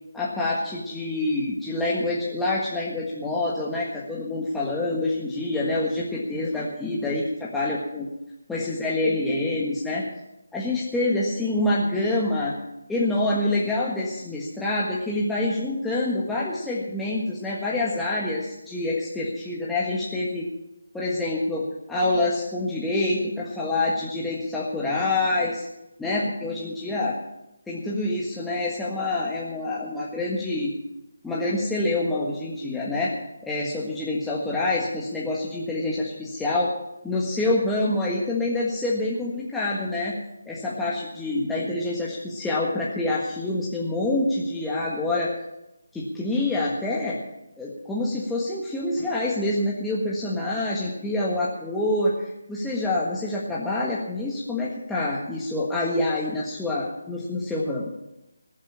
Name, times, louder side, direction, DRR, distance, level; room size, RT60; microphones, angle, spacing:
voice 1, 0.1-8.1 8.5-10.1 10.5-12.5 12.9-20.5 20.9-25.7 26.0-27.2 27.7-30.7 31.2-33.2 33.4-36.7 37.0-40.2 40.4-45.3 45.9-47.2 47.6-57.9, left 2 dB, 5° left, -6 dB, 1.6 m, -26 dB
19.5 x 7.5 x 7.2 m, 0.93 s
figure-of-eight pair, 155°, 0 cm